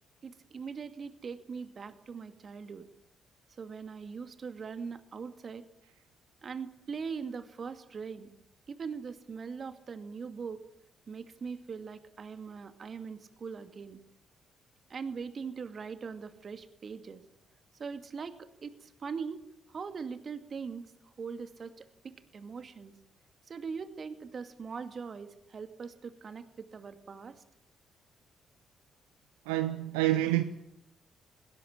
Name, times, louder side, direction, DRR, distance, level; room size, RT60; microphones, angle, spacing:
voice 1, 0.2-2.9 3.6-5.6 6.4-8.3 8.7-10.6 11.1-14.0 14.9-17.2 17.8-19.4 19.7-20.8 21.2-22.9 23.5-27.4, right 5 dB, 45° right, 2.2 m, -41 dB
voice 2, 29.5-30.4, right 15 dB, 80° right, 0.8 m, -27 dB
20.5 x 17.5 x 8.9 m
hypercardioid pair, 45°, 0 cm